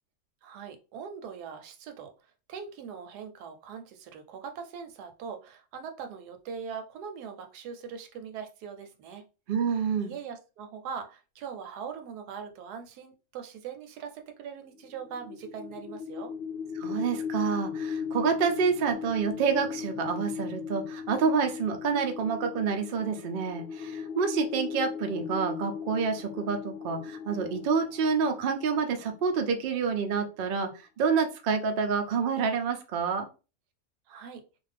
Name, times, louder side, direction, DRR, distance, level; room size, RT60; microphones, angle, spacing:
voice 1, 0.4-2.1 2.5-9.2 10.0-16.3 34.1-34.4, right 6 dB, 90° right, 6 dB, 1.2 m, -41 dB
voice 2, 9.5-10.1 16.8-33.3, right 5 dB, 75° right, 5 dB, 0.5 m, -28 dB
sound 1, 14.7-29.8, left 6 dB, 90° left, 0.5 m, -38 dB
2.5 x 2.4 x 3.3 m, 0.32 s
omnidirectional pair, 1.6 m